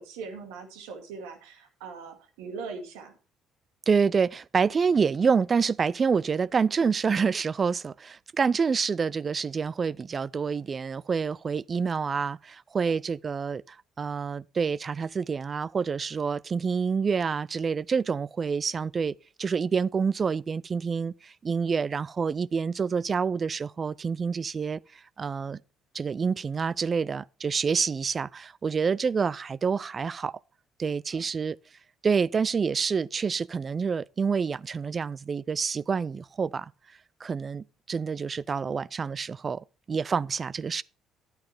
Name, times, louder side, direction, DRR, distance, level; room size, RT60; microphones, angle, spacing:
voice 1, 0.0-3.1 12.8-12.9 31.1-31.3, right 4 dB, 80° right, 2.0 m, -41 dB
voice 2, 3.9-24.8 25.2-25.6 25.9-30.4 30.8-31.6 32.0-36.7 37.2-40.8, right 5 dB, 40° right, 0.4 m, -27 dB
10.5 x 8.9 x 3.4 m
hypercardioid pair, 55°, 0 cm